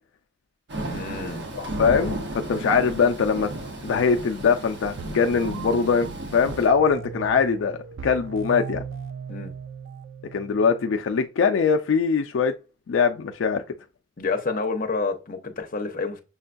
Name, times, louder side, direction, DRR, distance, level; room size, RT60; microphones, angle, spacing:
voice 1, 0.7-1.5 9.3-9.5 14.2-16.2, left 4 dB, 45° left, 0.7 m, -29 dB
Thunder / Rain, 0.7-6.7, right 1 dB, 65° right, 1.0 m, -34 dB
voice 2, 1.5-3.5 3.8-8.8 10.3-12.5 12.9-13.6, left 5 dB, 80° left, 0.4 m, -22 dB
sound 1, 5.0-11.0, right 6 dB, 90° right, 0.4 m, -38 dB
6.3 x 2.2 x 2.5 m
head